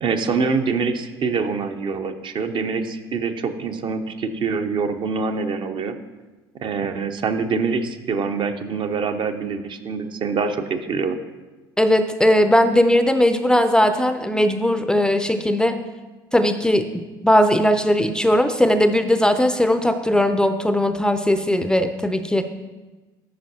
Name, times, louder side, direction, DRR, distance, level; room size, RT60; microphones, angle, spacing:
voice 1, 0.0-5.9 6.6-11.2, right 5 dB, 45° right, 8 dB, 0.7 m, -25 dB
voice 2, 11.8-15.8 16.3-22.4, left 1 dB, 5° left, 10 dB, 0.5 m, -18 dB
13.0 x 5.8 x 2.8 m, 1.2 s
hypercardioid pair, 65°, 12 cm